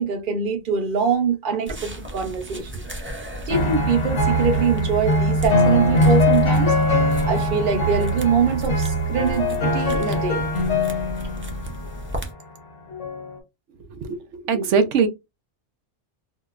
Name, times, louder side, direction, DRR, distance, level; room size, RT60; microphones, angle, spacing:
voice 1, 0.0-2.8 3.5-6.8 7.2-10.5, right 5 dB, 50° right, 0.9 m, -23 dB
sound 1, 1.7-12.3, right 1 dB, 20° right, 0.3 m, -35 dB
sound 2, 3.5-12.1 12.9-13.4, equal, 85° left, 1.3 m, -21 dB
voice 2, 14.0-15.1, right 5 dB, 85° right, 0.9 m, -21 dB
4.1 x 2.1 x 2.3 m
omnidirectional pair, 1.2 m